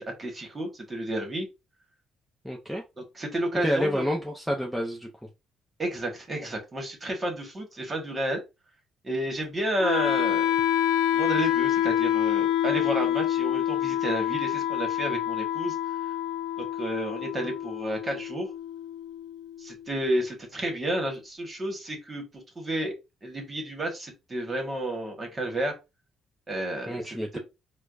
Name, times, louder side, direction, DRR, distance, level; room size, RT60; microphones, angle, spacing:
voice 1, 0.0-1.5 3.0-4.1 5.8-8.4 9.0-10.5 11.1-15.7 16.6-18.5 19.6-22.9 23.2-25.7 26.5-27.4, right 1 dB, 30° right, 3 dB, 1.5 m, -31 dB
voice 2, 2.4-2.8 3.6-5.1 26.9-27.4, equal, ahead, 0 dB, 0.7 m, -29 dB
Wind instrument woodwind instrument, 9.8-19.8, left 11 dB, 85° left, 0.4 m, -27 dB
4.3 x 2.3 x 2.5 m, 0.24 s
cardioid pair, 90°, 0 cm